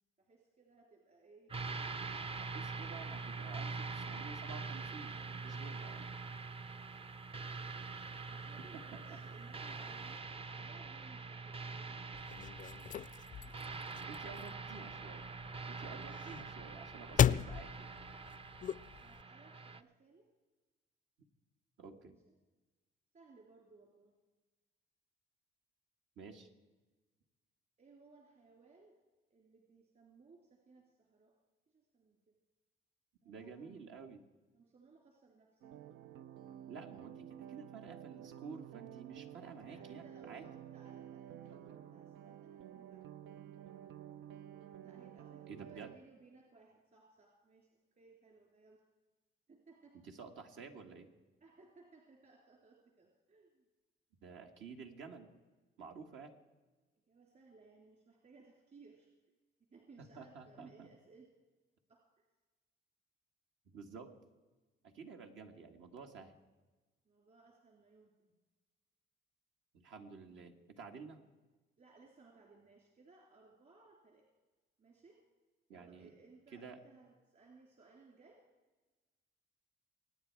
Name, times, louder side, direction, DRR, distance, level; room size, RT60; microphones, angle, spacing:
voice 1, 0.2-1.5 6.5-7.2 8.3-12.0 13.3-13.5 18.5-20.3 22.1-22.3 23.1-24.1 27.8-29.0 29.3-31.3 31.7-32.4 33.2-34.0 34.5-35.7 39.4-43.3 44.8-48.8 49.5-50.0 51.4-53.7 57.1-59.1 59.7-61.3 61.9-62.3 67.0-68.3 71.8-74.3 74.8-75.2 75.7-78.4, right 4 dB, 45° right, 0 dB, 3.2 m, -62 dB
sound 1, 1.5-19.8, right 4 dB, 30° right, 0.6 m, -44 dB
voice 2, 2.4-6.1 8.7-9.2 14.1-15.3 15.7-18.0 21.8-22.2 26.2-26.5 33.3-34.2 36.7-40.5 45.5-45.9 49.9-51.1 54.2-55.3 55.8-56.3 60.0-60.9 63.7-64.1 64.8-66.4 69.7-71.2 75.7-76.1 76.5-76.8, right 5 dB, 75° right, 4 dB, 1.9 m, -51 dB
sound 2, 12.1-19.2, left 9 dB, 40° left, 0.4 m, -37 dB
sound 3, 35.6-46.0, right 10 dB, 90° right, 0.6 m, -51 dB
24.5 x 9.7 x 4.7 m, 1.2 s
cardioid pair, 90°, 20 cm